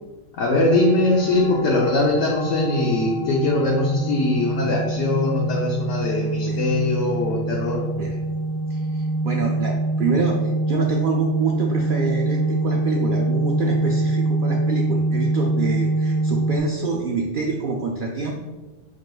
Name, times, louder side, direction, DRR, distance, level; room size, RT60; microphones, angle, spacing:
voice 1, 0.4-7.8, left 2 dB, 70° left, -2 dB, 1.0 m, -21 dB
sound 1, 0.6-16.6, right 2 dB, 40° left, 0.9 m, -25 dB
voice 2, 8.7-18.3, right 4 dB, 70° right, 0 dB, 0.5 m, -26 dB
4.9 x 4.8 x 2.2 m, 1.2 s
omnidirectional pair, 1.4 m